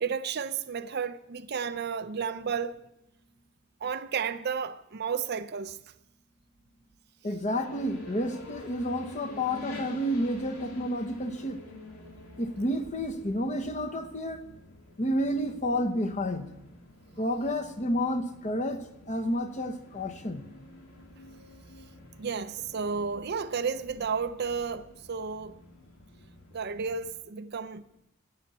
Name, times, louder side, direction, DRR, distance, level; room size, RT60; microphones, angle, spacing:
voice 1, 0.0-2.8 3.8-5.8 22.2-25.6 26.5-27.8, right 6 dB, 45° right, 0.5 m, -32 dB
voice 2, 7.2-11.6 12.4-14.4 15.0-16.5 17.2-20.5, equal, 30° left, 1.0 m, -30 dB
sound 1, 7.5-27.1, left 2 dB, 80° left, 2.6 m, -48 dB
11.0 x 8.6 x 8.2 m
head